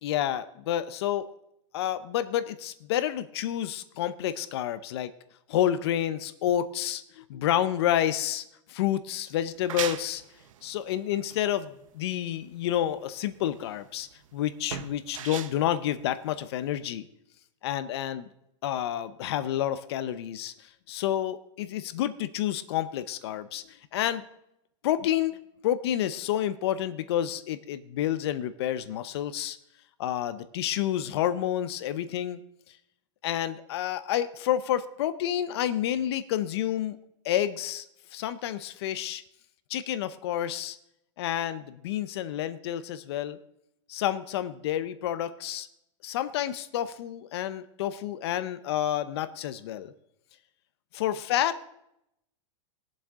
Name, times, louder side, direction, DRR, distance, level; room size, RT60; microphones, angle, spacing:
voice 1, 0.0-1.2 1.7-5.1 5.5-8.4 8.7-10.2 10.6-17.1 17.6-18.3 18.6-20.5 20.9-24.2 24.8-25.4 25.6-29.6 30.0-32.4 33.2-37.0 37.2-37.8 38.1-39.2 39.7-40.8 41.2-43.4 43.9-45.7 46.0-49.9 50.9-51.6, left 11 dB, 55° left, 13 dB, 0.8 m, -29 dB
sound 1, 9.4-16.8, right 9 dB, 85° right, 0.9 m, -40 dB
20.5 x 7.5 x 3.7 m, 0.79 s
supercardioid pair, 165°, 17 cm